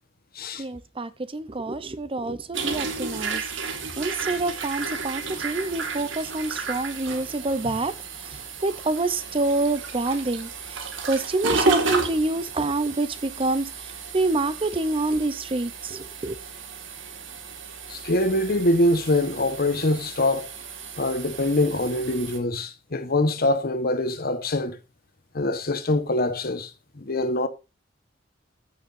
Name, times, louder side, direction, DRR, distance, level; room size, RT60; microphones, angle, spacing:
voice 1, 0.6-7.9 8.6-16.4, right 2 dB, 30° right, 0.7 m, -27 dB
sound 1, 2.5-22.4, right 4 dB, 80° right, 2.0 m, -33 dB
voice 2, 17.9-20.5 21.0-24.8 25.3-26.7 27.0-27.5, left 1 dB, 55° left, 1.2 m, -24 dB
15.0 x 6.2 x 2.6 m
head